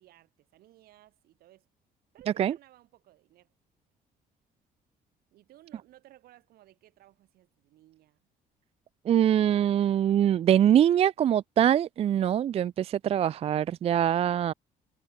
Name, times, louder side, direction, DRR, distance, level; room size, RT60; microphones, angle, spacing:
voice 1, 0.0-1.7 2.1-3.5 5.3-8.2, right 15 dB, 80° right, 5.7 m, -58 dB
voice 2, 9.1-14.5, right 10 dB, 40° right, 0.4 m, -23 dB
cardioid pair, 130°, 15 cm